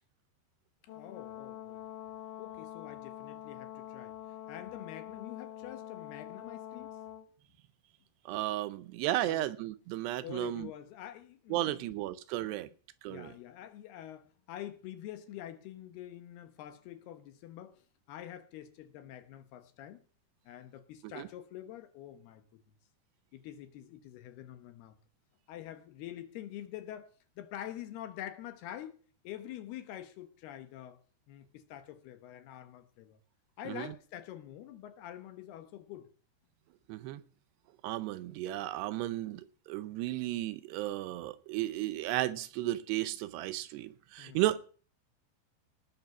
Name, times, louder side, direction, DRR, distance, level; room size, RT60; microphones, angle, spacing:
voice 1, 0.8-1.8 2.4-4.2 4.5-6.9 9.2-9.5 10.2-11.9 12.4-12.6 13.1-20.0 20.5-22.6 23.3-25.0 25.5-27.1 27.4-31.0 31.3-33.2 33.6-36.1 44.2-44.4, left 12 dB, 70° left, 3.0 m, -46 dB
Brass instrument, 0.9-7.3, left 11 dB, 90° left, 3.8 m, -45 dB
voice 2, 8.3-10.7 11.5-12.7 13.0-13.3 21.2-21.3 33.7-33.9 36.9-37.2 37.8-44.6, right 15 dB, 80° right, 2.8 m, -34 dB
18.5 x 6.8 x 5.9 m
omnidirectional pair, 5.0 m